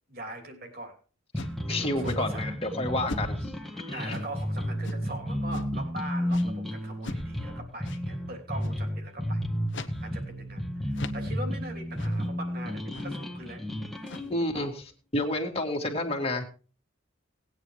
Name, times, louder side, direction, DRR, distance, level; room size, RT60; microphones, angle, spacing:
voice 1, 0.1-0.9 1.4-2.5 3.9-9.4 10.0-13.6 14.1-14.7, right 1 dB, 50° right, 4 dB, 3.1 m, -42 dB
sound 1, 1.3-1.6 2.0-2.2 3.1-3.5 4.1-4.4 4.8-5.1 5.5-5.8 6.3-6.5 7.0-7.3 7.8-8.0 8.6-8.9 9.7-10.0 10.3-10.4 10.9-11.3 12.0-12.2 12.9-13.2 13.9-14.4, left 2 dB, 60° left, 1.0 m, -40 dB
sound 2, 1.3-14.3, equal, ahead, 1.6 m, -32 dB
voice 2, 1.4-4.2 14.3-14.8 15.1-16.4, left 1 dB, 30° left, 2 dB, 2.2 m, -30 dB
19.0 x 9.1 x 3.2 m, 0.36 s
head